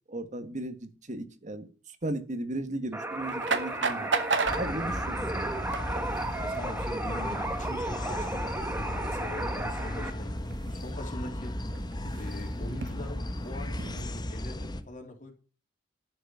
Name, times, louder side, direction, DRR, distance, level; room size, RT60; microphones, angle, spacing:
voice 1, 0.1-1.7 2.0-4.1 4.5-5.6, right 1 dB, 40° right, 1.7 m, -36 dB
sound 1, 2.9-10.1, right 2 dB, 10° right, 1.9 m, -34 dB
sound 2, 3.1-14.2, right 4 dB, 75° right, 1.9 m, -37 dB
voice 2, 3.9-4.2 6.4-11.6 12.1-15.3, left 1 dB, 45° left, 3.6 m, -42 dB
sound 3, 4.4-14.8, left 1 dB, 25° left, 1.2 m, -36 dB
12.0 x 6.6 x 9.2 m
head